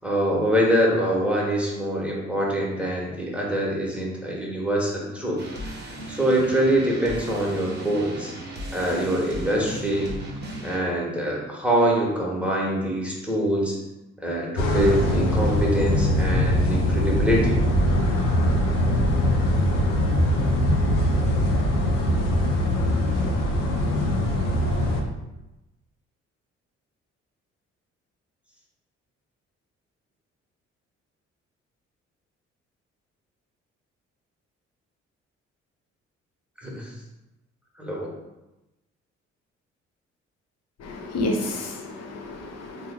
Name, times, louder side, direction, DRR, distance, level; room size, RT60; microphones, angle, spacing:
voice 1, 0.0-5.8 6.1-8.3 8.7-10.1 10.6-13.8 14.2-17.6 36.6-36.9 37.8-38.1, right 1 dB, 5° right, -4 dB, 1.1 m, -24 dB
sound 1, 5.4-10.8, right 1 dB, 30° right, 0.9 m, -36 dB
sound 2, 14.6-25.0, left 1 dB, 80° left, 0.5 m, -22 dB
voice 2, 40.8-42.9, left 1 dB, 45° left, 3 dB, 0.7 m, -30 dB
3.9 x 2.1 x 3.5 m, 1.0 s
figure-of-eight pair, 40°, 36 cm